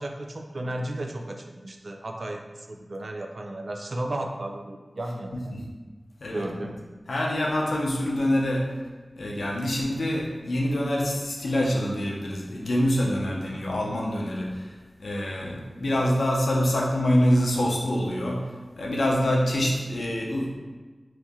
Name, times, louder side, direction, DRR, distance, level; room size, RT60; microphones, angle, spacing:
voice 1, 0.0-5.5 6.3-6.8, right 1 dB, 65° right, 3 dB, 0.4 m, -34 dB
voice 2, 7.1-8.7 9.2-20.6, equal, 90° left, -2 dB, 0.6 m, -25 dB
3.1 x 2.8 x 3.5 m, 1.3 s
wide cardioid pair, 60°, 0 cm